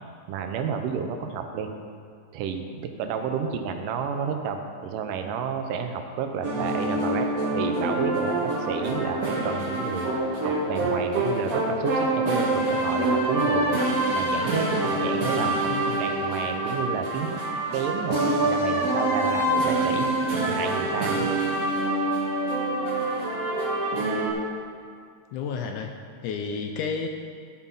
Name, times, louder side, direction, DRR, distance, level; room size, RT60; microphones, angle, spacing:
voice 1, 0.3-1.7 2.3-10.1 10.4-13.8 14.1-17.4 17.7-21.3, right 6 dB, 80° right, 6 dB, 2.3 m, -31 dB
sound 1, 6.4-24.3, right 2 dB, 50° right, 1.0 m, -26 dB
voice 2, 15.7-16.0 25.3-25.9 26.2-27.1, left 5 dB, 80° left, 4 dB, 1.9 m, -31 dB
12.5 x 5.8 x 5.4 m, 2.2 s
omnidirectional pair, 3.9 m